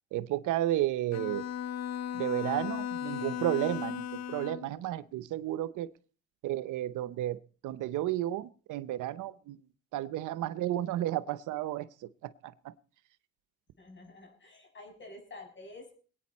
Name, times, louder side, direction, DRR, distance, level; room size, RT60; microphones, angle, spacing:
voice 1, 0.1-1.4 2.1-5.9 6.4-9.6 9.9-11.9 12.2-12.7, right 13 dB, 85° right, 0.7 m, -32 dB
Bowed string instrument, 1.1-4.7, left 9 dB, 60° left, 0.8 m, -36 dB
voice 2, 13.8-15.9, left 2 dB, 40° left, 6.2 m, -49 dB
22.0 x 9.2 x 4.2 m
cardioid pair, 90°, 30 cm